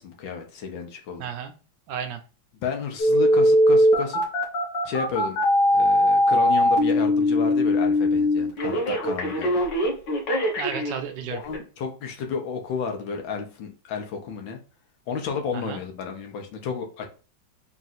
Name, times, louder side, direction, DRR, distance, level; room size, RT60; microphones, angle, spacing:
voice 1, 0.0-1.2 2.6-4.2 4.9-5.4 5.7-9.5 11.3-14.6 15.1-17.1, left 6 dB, 85° left, 3 dB, 1.7 m, -32 dB
voice 2, 1.2-1.5 1.9-2.2 10.6-11.4 15.5-15.8, right 8 dB, 75° right, 8 dB, 1.2 m, -33 dB
Telephone, 3.0-11.0 11.5-11.6, left 1 dB, 70° left, 1.7 m, -20 dB
4.0 x 2.5 x 4.1 m, 0.35 s
omnidirectional pair, 2.1 m